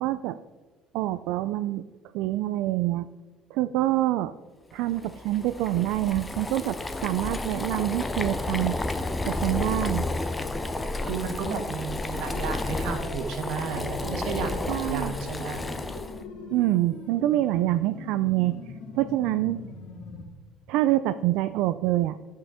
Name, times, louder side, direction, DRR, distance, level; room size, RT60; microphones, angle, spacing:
voice 1, 0.0-0.4 0.9-1.8 2.1-3.1 3.5-4.3 4.7-8.8 9.2-10.1 14.7-15.1 16.5-18.6 18.9-19.6 20.7-22.2, right 15 dB, 75° right, 12 dB, 0.3 m, -26 dB
Boiling, 4.9-16.2, left 2 dB, 10° left, 0.5 m, -31 dB
voice 2, 11.0-15.7, right 5 dB, 60° right, 5 dB, 1.5 m, -33 dB
sound 1, 12.8-20.2, left 3 dB, 90° left, 2.3 m, -41 dB
12.5 x 5.5 x 4.9 m, 1.3 s
cardioid pair, 180°, 0 cm